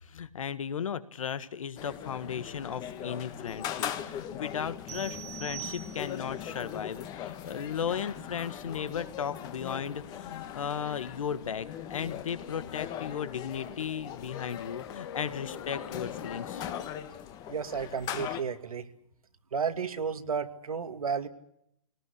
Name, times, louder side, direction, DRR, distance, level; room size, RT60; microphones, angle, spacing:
voice 1, 0.0-16.6, left 7 dB, 70° left, 14 dB, 1.7 m, -36 dB
sound 1, 1.8-18.4, left 10 dB, 20° left, 1.6 m, -40 dB
sound 2, 4.9-6.4, right 15 dB, 20° right, 1.6 m, -43 dB
sound 3, 9.4-16.9, left 9 dB, 50° left, 2.3 m, -45 dB
voice 2, 17.5-18.9 19.5-21.3, right 6 dB, 80° right, 8 dB, 2.4 m, -32 dB
22.0 x 19.0 x 10.0 m, 0.74 s
hypercardioid pair, 145°, 18 cm